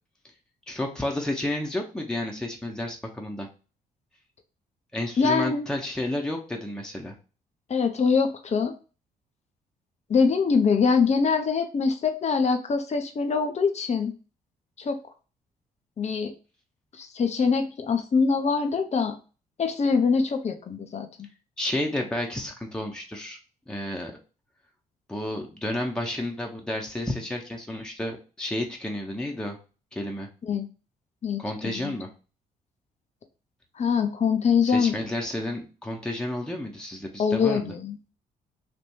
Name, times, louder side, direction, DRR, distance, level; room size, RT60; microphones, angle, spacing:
voice 1, 0.7-3.5 4.9-7.1 21.6-23.4 23.7-24.1 25.1-29.6 29.9-30.3 31.4-32.1 34.6-37.7, left 1 dB, 5° left, 1 dB, 1.0 m, -31 dB
voice 2, 5.2-5.7 7.7-8.8 10.1-14.1 14.8-15.0 16.0-16.3 17.0-19.2 19.6-21.3 30.4-30.7 31.2-31.9 33.8-35.0 37.2-38.1, left 5 dB, 35° left, 6 dB, 0.7 m, -24 dB
3.4 x 2.5 x 4.4 m, 0.34 s
hypercardioid pair, 45°, 20 cm